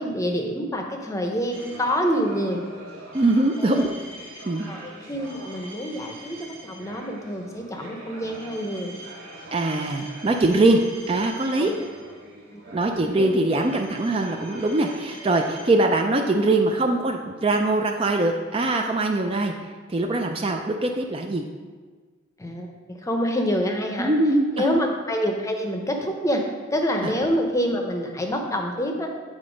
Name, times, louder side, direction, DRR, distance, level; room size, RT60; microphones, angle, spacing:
voice 1, 0.0-2.7 3.6-3.9 4.7-9.0 11.6-11.7 12.5-13.3 22.4-24.1 24.6-26.4 26.7-29.1, equal, 15° left, 3 dB, 0.7 m, -27 dB
sound 1, 1.5-15.7, right 1 dB, 85° right, 1.7 m, -43 dB
voice 2, 3.1-3.9 4.4-4.7 9.5-10.8 11.1-11.7 12.7-21.5 24.0-24.9 27.0-27.1, right 2 dB, 25° right, 3 dB, 0.4 m, -22 dB
8.8 x 4.2 x 5.1 m, 1.5 s
head